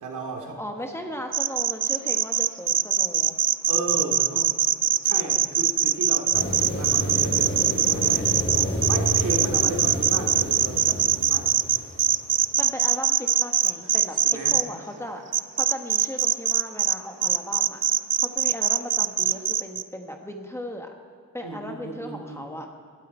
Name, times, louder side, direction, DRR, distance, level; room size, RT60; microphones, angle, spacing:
voice 1, 0.0-0.6 3.7-4.5 5.0-8.5 8.9-11.5 13.8-13.9 14.2-14.6 21.4-22.7, right 2 dB, 85° right, 0 dB, 2.4 m, -35 dB
voice 2, 0.6-3.4 12.6-15.2 15.6-17.8 18.2-20.9 21.3-22.7, equal, 10° left, 3 dB, 1.3 m, -36 dB
sound 1, 1.3-14.6 15.3-16.9 17.2-19.8, right 11 dB, 60° right, 0.5 m, -22 dB
sound 2, 6.3-12.3, equal, 40° left, 3.0 m, -30 dB
18.0 x 12.5 x 4.4 m, 2.3 s
wide cardioid pair, 130°, 30 cm